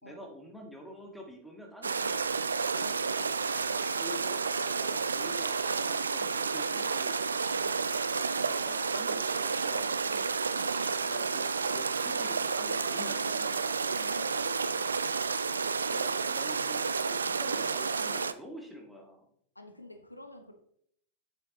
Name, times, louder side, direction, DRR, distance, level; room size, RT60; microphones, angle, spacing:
voice 1, 0.0-2.2 2.7-3.3 4.0-4.5 4.8-7.2 8.4-10.3 11.0-13.8 15.9-19.3, equal, ahead, 0 dB, 1.8 m, -47 dB
sound 1, 1.8-18.3, right 5 dB, 75° right, 0.3 m, -31 dB
sound 2, 2.0-2.9 3.2-4.3 5.0-6.1 6.8-7.3 7.8-8.7 9.3-9.7 10.6-11.3 12.0-13.0 13.5-14.4, left 2 dB, 15° left, 3.4 m, -57 dB
voice 2, 3.6-4.1 7.5-7.9 10.5-11.2 14.0-15.0 15.7-16.1 19.5-20.5, left 1 dB, 85° left, 7 dB, 0.8 m, -50 dB
sound 3, 8.9-11.7 12.8-15.8, right 3 dB, 55° right, 1.7 m, -52 dB
7.7 x 7.4 x 3.0 m, 0.67 s
figure-of-eight pair, 90°, 0 cm